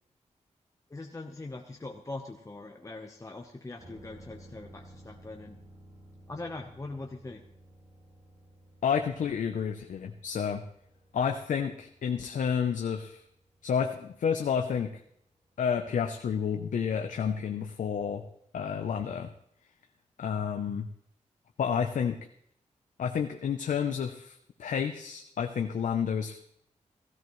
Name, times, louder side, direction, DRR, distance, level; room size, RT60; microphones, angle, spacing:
voice 1, 0.9-5.6 6.3-7.4, left 2 dB, 25° left, 3 dB, 0.9 m, -42 dB
sound 1, 3.8-15.4 15.7-15.8, right 1 dB, 55° right, 4.6 m, -55 dB
voice 2, 8.8-10.6 11.1-13.2 13.6-14.9 15.6-18.2 18.5-19.3 20.2-20.9 21.6-22.2 23.0-26.4, left 7 dB, 85° left, 5 dB, 0.7 m, -30 dB
16.0 x 13.5 x 3.1 m, 0.72 s
cardioid pair, 80°, 13 cm